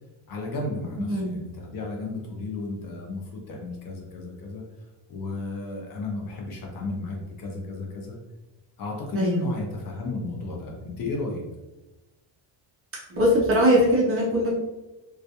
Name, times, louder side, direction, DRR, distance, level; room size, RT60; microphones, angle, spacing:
voice 1, 0.3-4.6 5.1-8.2 8.8-11.4, left 2 dB, 45° left, 0 dB, 0.6 m, -33 dB
voice 2, 13.1-14.5, equal, 30° right, -4 dB, 0.4 m, -21 dB
2.3 x 2.2 x 2.7 m, 1.1 s
cardioid pair, 170°, 47 cm